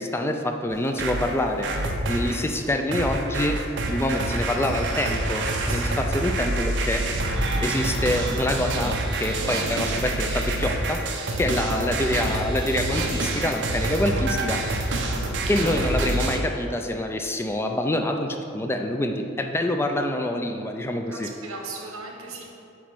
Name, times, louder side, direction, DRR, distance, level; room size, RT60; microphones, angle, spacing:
voice 1, 0.0-1.7 2.1-3.6 3.9-7.0 7.6-11.0 11.4-14.8 15.5-21.3, left 1 dB, 10° left, 4 dB, 0.3 m, -26 dB
sound 1, 0.7-2.4 2.9-16.4, right 2 dB, 60° right, 0.7 m, -27 dB
voice 2, 5.7-6.1 11.3-11.6 15.5-15.7 21.1-22.4, right 3 dB, 85° right, 0 dB, 1.2 m, -38 dB
8.2 x 3.0 x 6.1 m, 2.7 s
head